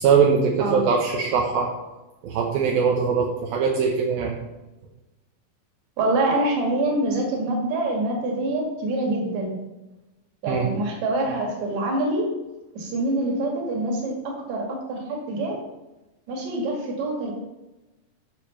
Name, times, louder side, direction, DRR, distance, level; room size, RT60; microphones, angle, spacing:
voice 1, 0.0-1.7 2.2-4.4 10.5-10.7, right 6 dB, 75° right, 0 dB, 2.8 m, -21 dB
voice 2, 6.0-9.6 10.4-12.3 12.7-15.6 16.3-17.3, right 2 dB, 50° right, 0 dB, 3.3 m, -25 dB
10.0 x 6.9 x 5.4 m, 1.0 s
omnidirectional pair, 4.4 m